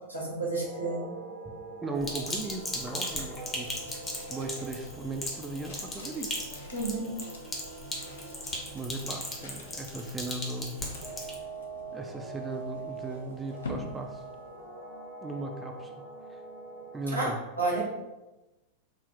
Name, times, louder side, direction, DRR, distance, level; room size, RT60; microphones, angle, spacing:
voice 1, 0.1-1.1 6.7-7.1 17.1-17.8, right 3 dB, 90° right, -4 dB, 1.0 m, -31 dB
sound 1, 0.6-17.3, right 3 dB, 50° right, 0.6 m, -44 dB
voice 2, 1.8-3.8 4.3-6.4 8.7-10.8 11.1-11.3 11.9-14.2 15.2-15.9 16.3-16.4 16.9-17.4, right 2 dB, 15° right, 3 dB, 0.3 m, -37 dB
Sink (filling or washing), 2.0-11.3, left 1 dB, 20° left, 0.7 m, -38 dB
sound 2, 3.6-15.0, left 2 dB, 65° left, 0.5 m, -48 dB
4.1 x 2.0 x 3.2 m, 1.0 s
figure-of-eight pair, 90°, 0 cm